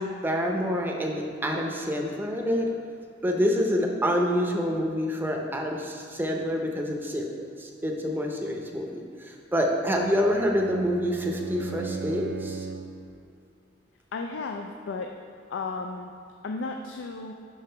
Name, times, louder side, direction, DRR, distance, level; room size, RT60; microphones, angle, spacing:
voice 1, 0.0-2.7 3.2-12.7, equal, 10° right, 1 dB, 0.6 m, -27 dB
Bowed string instrument, 9.9-13.1, right 3 dB, 55° right, 0.4 m, -38 dB
voice 2, 14.1-15.1 15.5-16.1 16.4-17.3, left 3 dB, 75° left, 3 dB, 0.4 m, -34 dB
5.4 x 4.8 x 5.6 m, 2.5 s
head